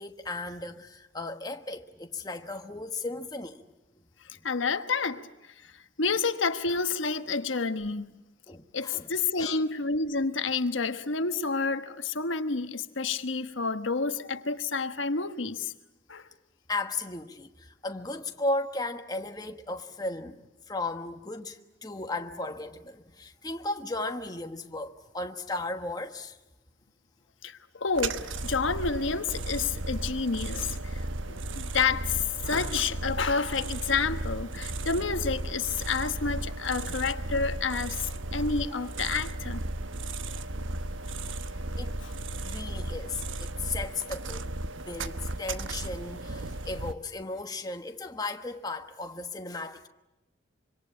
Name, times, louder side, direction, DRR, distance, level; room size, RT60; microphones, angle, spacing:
voice 1, 0.0-3.6 8.5-9.1 9.3-9.6 16.7-20.4 20.7-26.4 34.9-35.1 36.8-37.0 38.7-38.8 41.8-42.0 42.4-44.5 44.7-49.8, left 2 dB, 20° left, 1.3 m, -35 dB
voice 2, 4.3-5.7 6.0-8.1 8.7-15.7 16.1-16.3 27.4-39.6 42.0-42.1, left 4 dB, 80° left, 1.2 m, -29 dB
sound 1, 27.9-46.9, right 2 dB, 80° right, 1.1 m, -35 dB
26.0 x 24.5 x 8.6 m
head